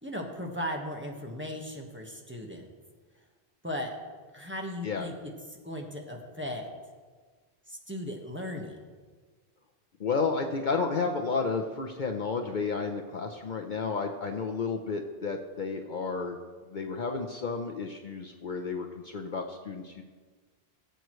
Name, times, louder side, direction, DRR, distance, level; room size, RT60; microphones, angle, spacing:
voice 1, 0.0-2.6 3.6-4.0 4.3-5.3 5.6-6.7 7.7-8.8, left 1 dB, 10° right, 0 dB, 1.2 m, -37 dB
voice 2, 10.0-16.4 16.6-20.0, left 4 dB, 50° left, 3 dB, 0.8 m, -32 dB
19.0 x 7.9 x 3.1 m, 1.5 s
omnidirectional pair, 1.1 m